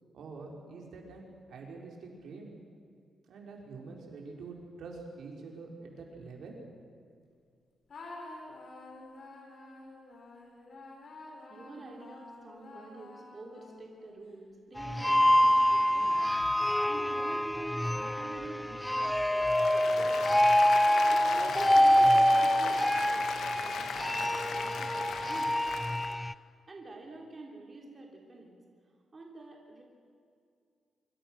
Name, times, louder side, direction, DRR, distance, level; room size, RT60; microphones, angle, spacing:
voice 1, 0.1-2.5 3.3-6.6, right 4 dB, 80° right, 0 dB, 4.8 m, -46 dB
sound 1, 7.9-14.1 14.7-18.6, left 2 dB, 50° left, 5.3 m, -49 dB
voice 2, 11.5-16.2 16.8-19.5 19.8-20.3 21.1-23.3 23.6-25.5 26.7-28.6 28.9-29.8, right 2 dB, 30° right, 0 dB, 3.3 m, -47 dB
sound 2, 14.8-26.3, equal, 5° left, 0.5 m, -26 dB
Applause, 19.4-26.1, left 7 dB, 85° left, 1.5 m, -38 dB
25.0 x 25.0 x 6.4 m, 2.3 s
wide cardioid pair, 150°, 0 cm